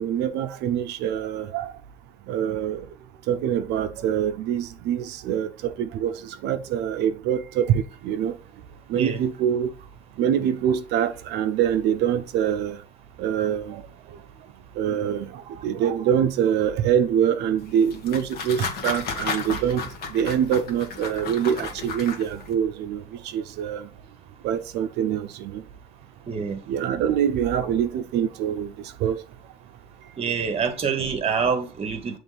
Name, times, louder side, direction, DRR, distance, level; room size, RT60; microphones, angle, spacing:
voice 1, 0.0-1.7 2.3-2.9 3.3-8.4 8.9-9.7 10.2-12.8 13.2-13.8 14.8-19.8 20.1-23.9 24.4-25.6 26.7-28.7 29.0-29.2, right 9 dB, 85° right, 0.8 m, -25 dB
sound 1, 17.6-22.5, left 5 dB, 65° left, 1.5 m, -33 dB
voice 2, 26.3-26.6 30.2-32.2, right 6 dB, 35° right, 1.2 m, -26 dB
7.1 x 3.5 x 3.9 m
cardioid pair, 110°, 17 cm